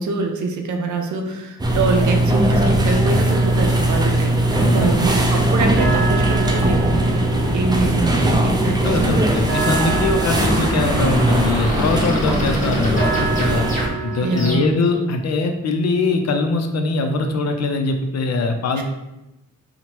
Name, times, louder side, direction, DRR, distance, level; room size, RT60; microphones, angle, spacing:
voice 1, 0.0-9.4 14.2-14.7 18.8-18.9, right 3 dB, 70° right, 3 dB, 0.5 m, -24 dB
sound 1, 1.6-13.9, right 1 dB, 15° right, 0.4 m, -19 dB
sound 2, 3.2-14.5, right 7 dB, 45° right, 0.8 m, -30 dB
voice 2, 4.5-5.0 8.6-13.7 14.0-18.8, left 3 dB, 55° left, 5 dB, 0.5 m, -22 dB
sound 3, 10.5-14.9, equal, 25° left, 1.2 m, -31 dB
2.9 x 2.1 x 2.9 m, 0.94 s
cardioid pair, 55°, 31 cm